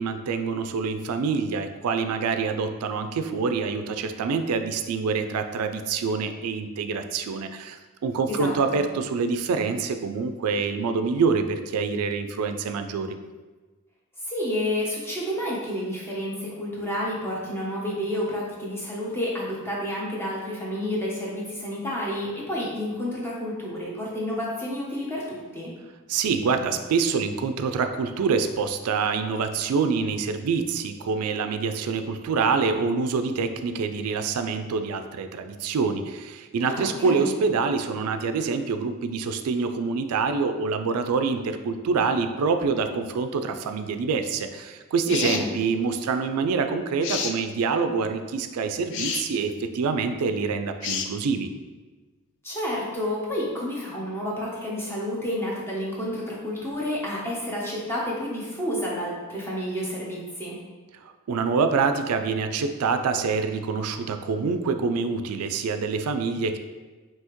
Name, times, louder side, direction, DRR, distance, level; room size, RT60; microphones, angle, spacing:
voice 1, 0.0-13.2 26.1-51.5 61.0-66.6, right 5 dB, 85° right, 8 dB, 0.3 m, -26 dB
voice 2, 8.3-8.8 14.2-25.7 36.7-37.3 45.1-45.5 52.4-60.6, left 1 dB, 10° left, -5 dB, 0.8 m, -30 dB
sound 1, 45.1-45.5 47.0-47.4 48.9-49.2 50.8-51.1, left 6 dB, 55° left, 0.4 m, -29 dB
5.5 x 2.8 x 3.0 m, 1.3 s
head